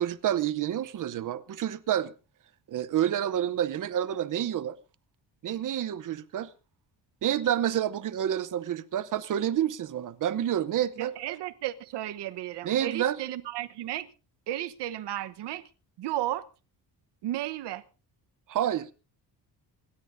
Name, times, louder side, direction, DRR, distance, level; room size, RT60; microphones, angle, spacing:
voice 1, 0.0-2.1 2.7-4.8 5.4-6.5 7.2-11.1 12.6-13.2 18.5-18.9, right 10 dB, 50° right, 0.8 m, -28 dB
voice 2, 11.0-14.1 14.5-15.7 16.0-16.4 17.2-17.8, right 14 dB, 85° right, 1.1 m, -34 dB
26.5 x 13.0 x 2.7 m
cardioid pair, 170°, 41 cm